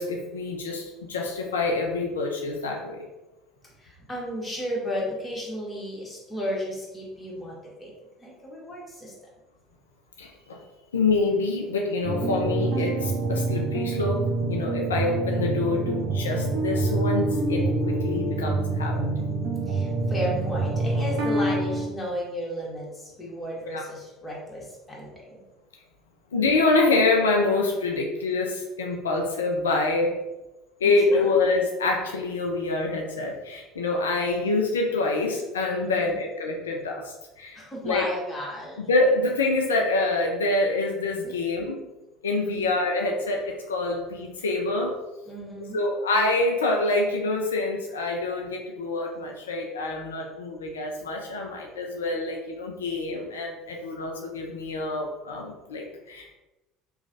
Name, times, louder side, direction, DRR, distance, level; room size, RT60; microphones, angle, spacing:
voice 1, 0.0-3.1 10.2-10.6 10.9-19.1 23.7-23.8 26.3-30.1 30.8-37.6 37.8-38.1 38.8-41.8 42.2-45.0 45.7-56.3, left 3 dB, 85° left, 1 dB, 0.4 m, -26 dB
voice 2, 3.6-7.9 8.2-9.1 19.7-25.4 30.8-31.3 35.7-36.2 37.5-38.8 41.2-41.4 42.5-42.6 45.3-45.8, equal, 15° left, -4 dB, 1.5 m, -34 dB
sound 1, 12.0-21.8, right 2 dB, 60° right, 0.7 m, -26 dB
3.0 x 2.4 x 3.9 m, 1.0 s
hypercardioid pair, 70°, 0 cm